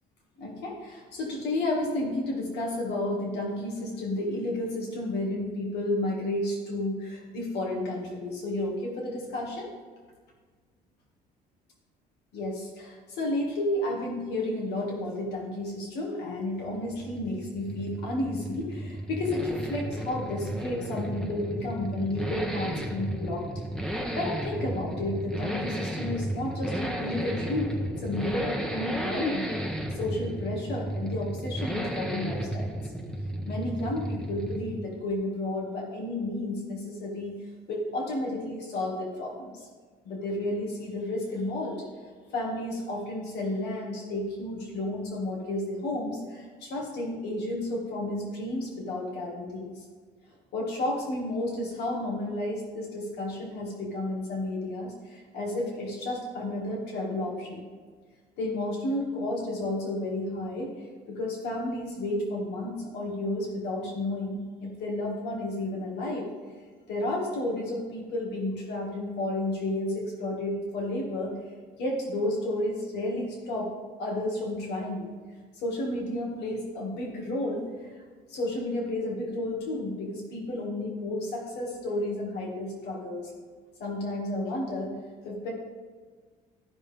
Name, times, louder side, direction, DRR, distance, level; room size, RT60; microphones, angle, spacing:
voice 1, 0.4-9.7 12.3-23.5 24.2-32.9 33.5-37.4 37.7-39.7 40.1-41.8 42.3-49.8 50.5-57.6 58.4-60.7 61.1-66.3 66.9-71.4 71.8-73.7 74.0-75.1 75.6-78.0 78.3-83.3 83.8-84.9 85.2-85.5, left 1 dB, 80° left, -2 dB, 2.1 m, -32 dB
Accelerating revving vroom, 16.7-34.8 35.1-35.2, right 1 dB, 5° left, 1.0 m, -33 dB
14.0 x 5.3 x 3.5 m, 1.5 s
cardioid pair, 110°, 17 cm